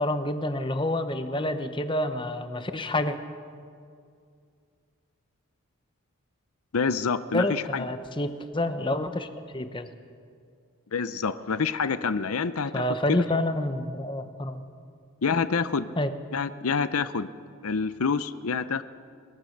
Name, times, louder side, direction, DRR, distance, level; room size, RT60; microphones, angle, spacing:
voice 1, 0.0-3.2 7.3-9.3 9.5-9.9 12.7-14.6 16.0-16.1, left 1 dB, 20° left, 9 dB, 0.9 m, -28 dB
voice 2, 6.7-7.8 10.9-12.8 13.1-13.2 15.2-15.9 16.3-17.3 17.6-18.8, left 5 dB, 80° left, 13 dB, 0.7 m, -27 dB
22.0 x 20.0 x 6.6 m, 2.3 s
head